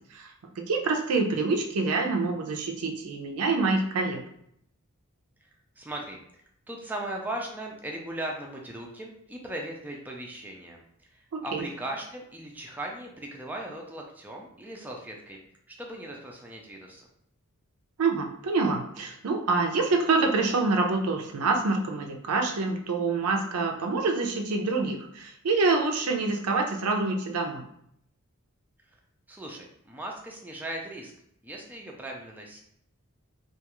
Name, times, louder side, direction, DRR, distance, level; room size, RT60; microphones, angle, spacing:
voice 1, 0.6-4.2 11.3-11.6 18.0-27.6, right 3 dB, 90° right, 3 dB, 0.5 m, -26 dB
voice 2, 5.8-6.4 6.7-15.4 15.7-17.1 29.3-31.1 31.4-32.6, right 1 dB, 10° right, 0 dB, 0.3 m, -38 dB
2.3 x 2.3 x 2.9 m, 0.70 s
head